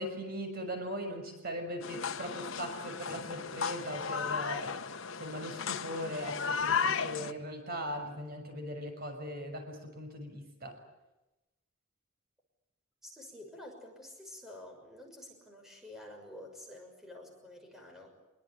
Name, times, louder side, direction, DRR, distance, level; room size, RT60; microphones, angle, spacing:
voice 1, 0.0-4.7 5.2-10.8, equal, 45° right, 5 dB, 6.4 m, -39 dB
Tai O general amb, 1.8-7.3, left 6 dB, 75° left, 1.3 m, -35 dB
voice 2, 13.0-18.1, left 1 dB, ahead, 1 dB, 6.3 m, -49 dB
25.5 x 23.5 x 8.8 m, 1.0 s
head